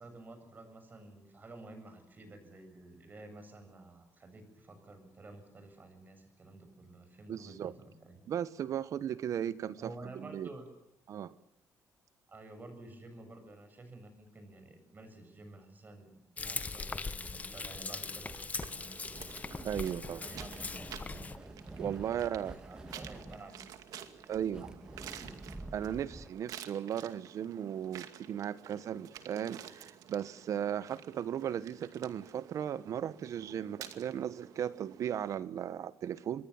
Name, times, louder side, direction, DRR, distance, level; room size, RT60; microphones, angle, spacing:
voice 1, 0.0-8.2 9.8-10.7 12.3-19.0 20.1-21.3 21.8-23.6 24.2-25.2, right 2 dB, 30° right, 7.4 m, -52 dB
voice 2, 7.3-7.7 8.3-10.5 11.1-11.3 19.6-20.2 21.8-22.5 24.3-24.7 25.7-36.5, right 9 dB, 60° right, 1.3 m, -36 dB
Frying (food), 16.4-21.4, left 4 dB, 25° left, 1.3 m, -40 dB
sound 1, 18.3-26.3, right 2 dB, 15° right, 1.9 m, -49 dB
sound 2, 18.6-35.4, right 9 dB, 80° right, 2.4 m, -51 dB
27.0 x 21.5 x 7.3 m
cardioid pair, 125°, 6 cm